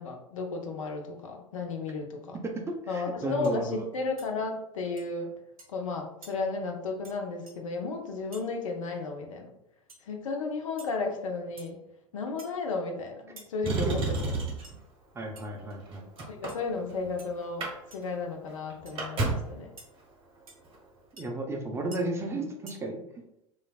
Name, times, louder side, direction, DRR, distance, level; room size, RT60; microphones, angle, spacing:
voice 1, 0.0-2.4 2.9-5.3 5.7-9.5 10.0-11.8 12.1-14.2 16.3-17.7 17.9-19.7, left 3 dB, 70° left, 3 dB, 0.5 m, -33 dB
voice 2, 2.9-3.9 13.7-14.0 15.1-16.1 21.2-23.0, right 2 dB, 15° right, 2 dB, 0.5 m, -33 dB
sound 1, 2.9-3.0 3.4-3.6 4.2-4.3 5.0-5.1 5.6-5.8 6.2-6.3 7.0-7.2 7.5-7.6 8.3-8.5 9.9-10.0 10.8-10.9 11.6-11.8 12.4-12.6 13.4-13.5 14.0-14.3 14.6-14.7 15.3-15.4 16.5-16.6 17.2-17.3 17.9-18.1 18.8-18.9 19.8-19.9 20.5-20.6 21.2-21.3 21.9-22.0 22.7-22.8, right 2 dB, 80° right, 0.6 m, -50 dB
Motor vehicle (road), 13.6-14.8 15.6-17.1 17.4-17.7 18.0-18.1 18.5-19.6 20.6-20.8, right 3 dB, 30° right, 0.9 m, -31 dB
3.1 x 2.4 x 2.3 m, 0.82 s
figure-of-eight pair, 80°, 18 cm